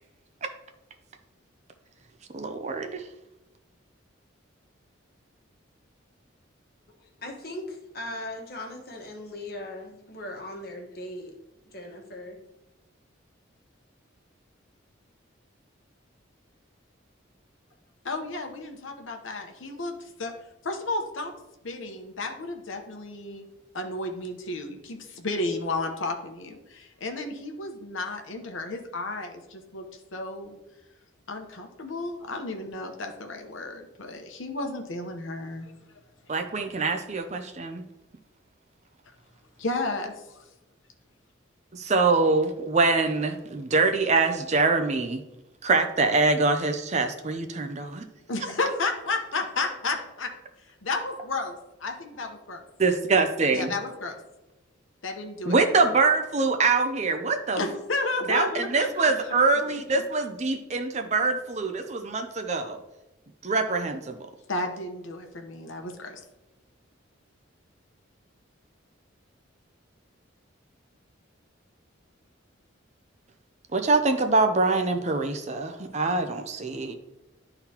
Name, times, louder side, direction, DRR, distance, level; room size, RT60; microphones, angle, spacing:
voice 1, 2.3-3.0 36.3-37.8 41.7-45.2 45.6-48.0 52.8-53.7 55.5-57.6 58.3-62.8 63.4-64.2 73.7-76.9, right 3 dB, 35° right, 6 dB, 0.5 m, -24 dB
voice 2, 7.0-11.3 11.7-12.4, left 1 dB, 50° left, 0 dB, 1.3 m, -39 dB
voice 3, 18.0-19.9 20.2-20.3 20.6-21.3 21.6-23.5 23.7-29.8 30.1-30.6 31.3-35.7 39.6-40.4 48.3-50.3 50.8-52.6 53.5-54.2 55.0-55.8 57.6-59.3 59.7-60.0 64.5-66.2, left 2 dB, 80° left, 4 dB, 0.9 m, -32 dB
11.5 x 3.9 x 2.9 m, 0.98 s
head